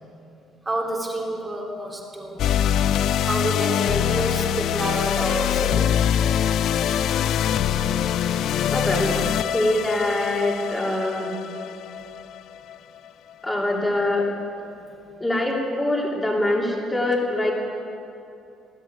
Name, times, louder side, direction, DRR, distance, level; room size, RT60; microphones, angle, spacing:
voice 1, 0.6-2.7 3.2-6.0, right 1 dB, 15° right, -1 dB, 2.9 m, -29 dB
sound 1, 2.4-12.8, left 9 dB, 55° left, 0.5 m, -23 dB
voice 2, 8.6-11.6 13.4-14.3 15.2-17.5, left 1 dB, 10° left, -1 dB, 3.0 m, -24 dB
20.0 x 15.0 x 9.4 m, 2.8 s
cardioid pair, 170°, 0 cm